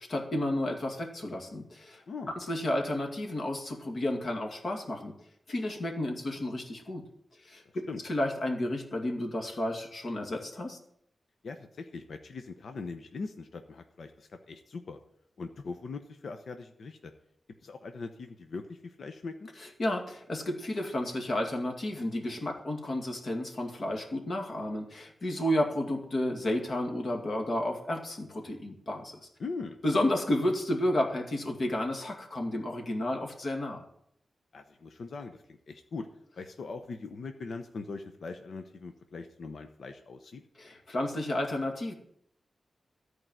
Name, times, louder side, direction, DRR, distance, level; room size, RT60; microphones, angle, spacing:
voice 1, 0.0-5.1 5.5-7.0 7.4-10.8 19.8-29.2 29.8-33.8 40.6-41.9, left 1 dB, 55° left, 2 dB, 2.2 m, -32 dB
voice 2, 7.6-8.0 11.4-15.0 15.4-17.1 17.6-19.5 29.4-29.8 34.5-36.1 36.4-40.4, left 4 dB, 70° left, 6 dB, 0.9 m, -41 dB
13.5 x 4.8 x 9.0 m, 0.70 s
wide cardioid pair, 115°, 0 cm